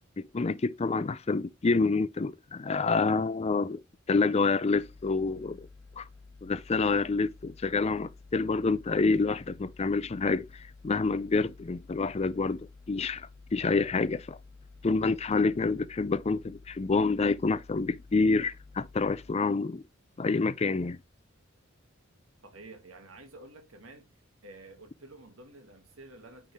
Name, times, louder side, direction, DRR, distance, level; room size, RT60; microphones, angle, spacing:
voice 1, 0.2-3.8 4.1-5.7 6.0-6.1 6.4-14.4 14.8-19.8 20.2-21.0, left 4 dB, 30° left, 0.4 m, -28 dB
sound 1, 4.7-19.3, left 3 dB, 85° left, 0.9 m, -52 dB
voice 2, 22.4-24.1 24.4-26.5, right 2 dB, 85° right, 1.8 m, -50 dB
9.2 x 3.8 x 3.2 m
head